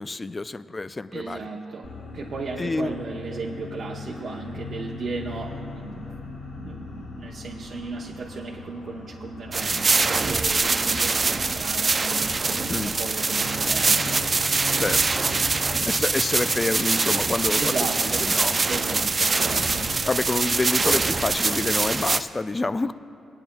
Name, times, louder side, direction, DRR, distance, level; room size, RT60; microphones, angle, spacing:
voice 1, 0.0-1.5 2.6-2.9 12.7-12.9 14.8-15.0 15.9-18.8 20.0-22.9, left 3 dB, 25° left, 13 dB, 0.3 m, -28 dB
voice 2, 1.1-14.5 17.6-18.3 18.7-19.9, right 3 dB, 60° right, -3 dB, 0.8 m, -35 dB
sound 1, 1.8-21.0, left 3 dB, 85° left, 1.1 m, -40 dB
sound 2, 9.5-22.2, right 4 dB, 40° right, 0.4 m, -23 dB
23.5 x 8.8 x 2.3 m, 2.9 s
cardioid pair, 70°, 0 cm